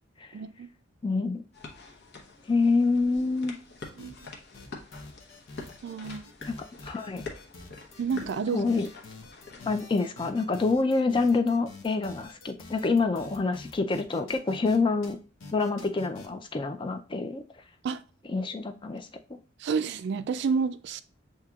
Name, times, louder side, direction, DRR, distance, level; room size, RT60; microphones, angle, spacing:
voice 1, 0.3-0.7 4.0-4.2 5.8-6.3 8.0-8.6 17.8-18.0 19.6-21.0, right 5 dB, 60° right, 0.3 m, -29 dB
voice 2, 1.0-1.4 2.5-3.5 6.5-7.3 8.5-8.9 9.7-15.2 15.5-17.4 18.3-19.4, left 3 dB, 25° left, 0.4 m, -27 dB
sound 1, 1.5-9.9, left 3 dB, 55° left, 0.9 m, -46 dB
sound 2, 3.8-4.3 4.5-14.8 15.0-15.1 15.4-16.3, left 3 dB, 85° left, 0.8 m, -46 dB
7.3 x 2.8 x 2.3 m
head